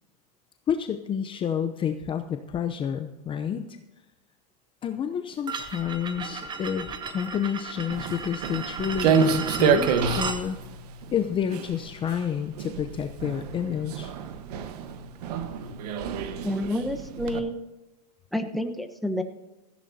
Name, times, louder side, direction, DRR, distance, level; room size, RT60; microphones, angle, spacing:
voice 1, 0.7-3.8 4.8-10.6 11.1-14.1, left 8 dB, 25° left, 7 dB, 0.7 m, -29 dB
sound 1, 5.5-10.4, right 5 dB, 20° right, 1.1 m, -35 dB
Walk footsteps, 7.9-17.4, right 6 dB, 75° right, 1.3 m, -28 dB
voice 2, 16.4-17.5 18.3-19.2, equal, ahead, 5 dB, 1.0 m, -29 dB
17.0 x 14.5 x 2.8 m, 1.1 s
supercardioid pair, 130°, 21 cm